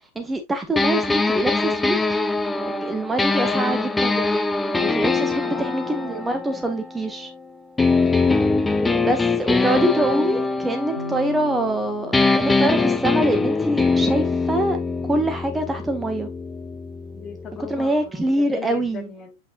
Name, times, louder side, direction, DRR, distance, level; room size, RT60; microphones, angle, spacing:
voice 1, 0.1-2.0 2.7-4.4 4.8-7.3 9.0-14.8 15.0-16.3 17.7-19.1, right 1 dB, 10° right, 1.6 m, -24 dB
sound 1, 0.8-7.3 7.8-11.8 12.1-17.9, left 3 dB, 10° left, 0.7 m, -23 dB
voice 2, 3.2-3.7 5.3-6.5 8.4-9.3 17.1-19.4, left 6 dB, 25° left, 1.3 m, -38 dB
sound 2, 11.0-14.3, left 3 dB, 85° left, 1.1 m, -39 dB
8.4 x 5.4 x 2.4 m
figure-of-eight pair, 90°, 0 cm